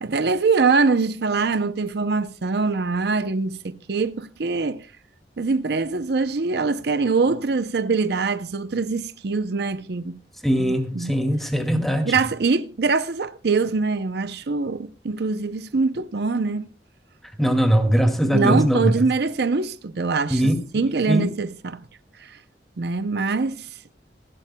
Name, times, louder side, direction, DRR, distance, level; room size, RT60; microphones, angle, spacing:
voice 1, 0.0-4.9 5.4-10.2 10.6-11.1 12.1-16.7 18.3-21.8 22.2-22.4 22.8-23.7, right 4 dB, 65° right, 0.6 m, -23 dB
voice 2, 10.4-12.2 17.4-19.0 20.3-20.5 21.1-21.3, equal, ahead, 2.2 m, -20 dB
27.5 x 12.0 x 2.2 m
head